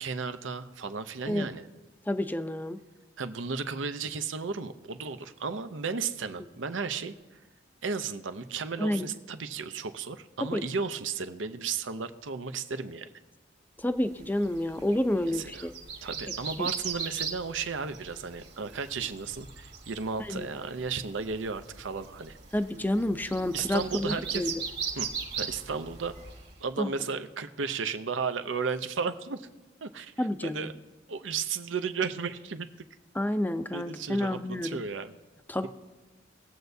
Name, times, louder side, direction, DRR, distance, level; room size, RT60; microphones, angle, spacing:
voice 1, 0.0-1.7 3.2-7.4 7.8-13.1 15.3-15.7 16.0-22.4 23.5-24.5 24.9-25.1 25.4-26.1 26.6-29.5 29.8-30.7 31.1-32.7 33.7-35.2, right 5 dB, 85° right, 10 dB, 0.7 m, -34 dB
voice 2, 2.1-2.8 8.8-9.1 10.5-10.6 13.8-15.7 16.6-16.7 20.3-20.5 22.5-24.6 26.8-26.9 30.2-30.7 33.2-34.8 35.5-35.7, left 1 dB, 10° left, 9 dB, 0.5 m, -29 dB
sound 1, 14.1-26.6, right 6 dB, 65° right, 1.8 m, -39 dB
21.0 x 7.9 x 2.7 m, 1.2 s
head